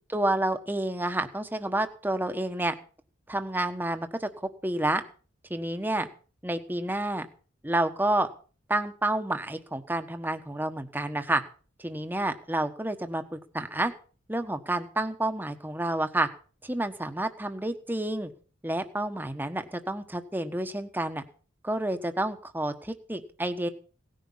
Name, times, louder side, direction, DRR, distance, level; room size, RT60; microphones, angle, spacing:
voice 1, 0.1-2.7 3.3-4.3 4.6-5.0 5.5-6.1 6.4-7.3 7.6-8.3 8.7-11.4 11.8-13.9 14.3-16.3 16.6-18.3 18.6-21.2 21.6-23.7, right 1 dB, 10° right, 8 dB, 1.2 m, -29 dB
18.0 x 10.5 x 5.6 m, 0.40 s
head